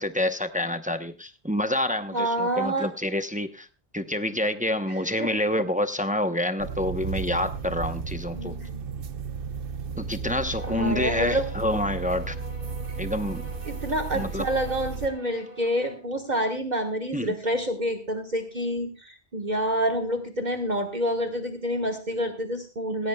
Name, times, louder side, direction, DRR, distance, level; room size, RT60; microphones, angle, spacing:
voice 1, 0.0-3.7 3.9-8.6 10.0-12.4 13.0-13.4 14.1-14.5 17.1-17.3, left 1 dB, 10° right, 9 dB, 0.6 m, -27 dB
voice 2, 2.1-2.9 4.9-5.3 8.3-8.9 10.7-11.5 13.7-23.1, equal, 45° right, 4 dB, 1.4 m, -28 dB
sound 1, 6.6-15.1, right 5 dB, 60° right, 1.0 m, -34 dB
sound 2, 10.5-16.1, equal, 40° left, 4.5 m, -45 dB
17.5 x 16.5 x 2.2 m, 0.32 s
omnidirectional pair, 1.1 m